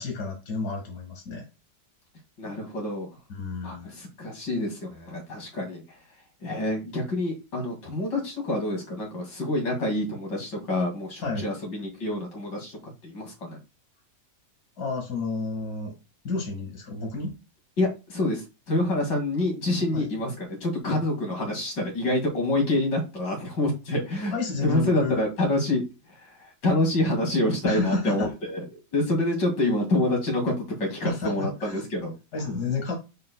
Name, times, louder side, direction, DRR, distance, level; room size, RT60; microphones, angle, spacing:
voice 1, 0.0-1.5 3.3-4.0 11.2-11.4 14.8-15.9 16.2-17.4 19.9-20.1 24.3-25.2 27.6-28.3 31.0-31.8 32.3-32.9, left 4 dB, 65° left, 1 dB, 2.3 m, -30 dB
voice 2, 2.4-3.1 3.6-5.8 6.4-13.6 17.8-24.3 24.6-25.8 26.1-28.6 28.9-32.1, left 1 dB, 85° left, 1 dB, 2.9 m, -27 dB
11.0 x 4.6 x 2.2 m, 0.28 s
omnidirectional pair, 1.9 m